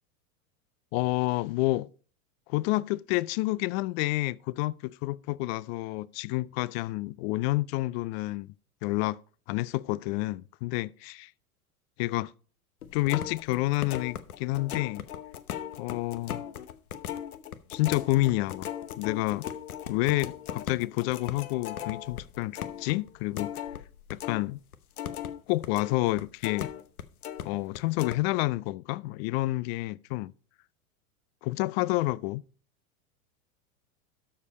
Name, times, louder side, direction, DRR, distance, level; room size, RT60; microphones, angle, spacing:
voice 1, 0.9-1.9 2.5-8.5 8.8-9.2 9.5-11.3 12.0-12.3 12.9-15.1 15.8-16.4 17.7-18.7 19.0-19.5 19.9-23.6 24.1-24.6 25.5-26.7 27.4-30.3 31.4-32.4, left 19 dB, 50° left, 0.4 m, -29 dB
sound 1, 12.8-24.4 24.7-27.5 27.7-28.2, left 10 dB, 85° left, 0.9 m, -38 dB
12.5 x 4.9 x 4.1 m
hypercardioid pair, 100°, 43 cm